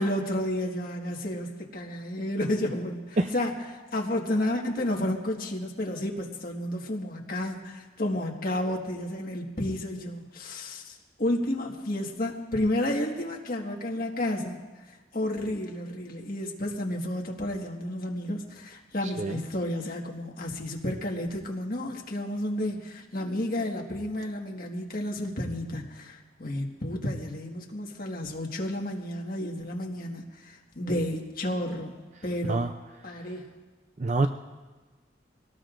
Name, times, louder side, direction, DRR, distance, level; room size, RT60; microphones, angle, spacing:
voice 1, 0.0-14.6 15.1-32.0 32.2-32.6 33.0-33.5, left 1 dB, 50° left, 0 dB, 1.7 m, -31 dB
voice 2, 3.2-3.3 19.2-19.4 32.4-32.7 34.0-34.3, right 2 dB, 40° right, 6 dB, 0.5 m, -25 dB
23.5 x 18.0 x 2.6 m, 1.3 s
head